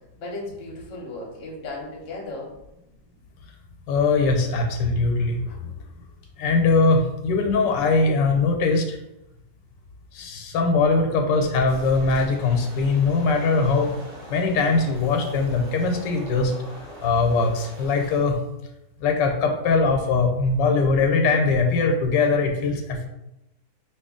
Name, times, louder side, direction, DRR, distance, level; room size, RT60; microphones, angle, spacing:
voice 1, 0.2-2.6 6.9-7.0, left 2 dB, 45° left, -2 dB, 1.0 m, -35 dB
voice 2, 3.9-5.4 6.4-9.0 10.1-13.9 14.3-16.5 17.0-18.4 19.0-23.1, left 3 dB, 85° left, 3 dB, 1.3 m, -21 dB
sound 1, 11.7-18.2, equal, 80° right, 1.6 m, -42 dB
2.9 x 2.8 x 3.6 m, 0.90 s
omnidirectional pair, 1.9 m